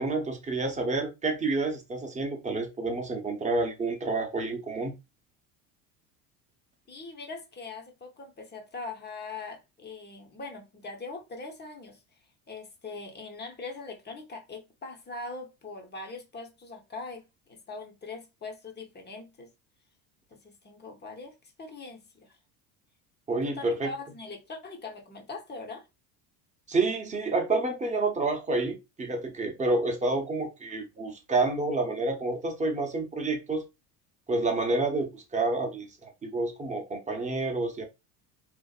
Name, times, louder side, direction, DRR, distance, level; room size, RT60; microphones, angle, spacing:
voice 1, 0.0-4.9 23.3-23.9 26.7-33.6 34.3-37.8, right 3 dB, 15° right, 0.8 m, -29 dB
voice 2, 6.9-12.0 12.5-19.5 20.3-22.4 23.4-25.9, left 3 dB, 20° left, 0.7 m, -41 dB
2.7 x 2.4 x 2.4 m
hypercardioid pair, 85°, 47 cm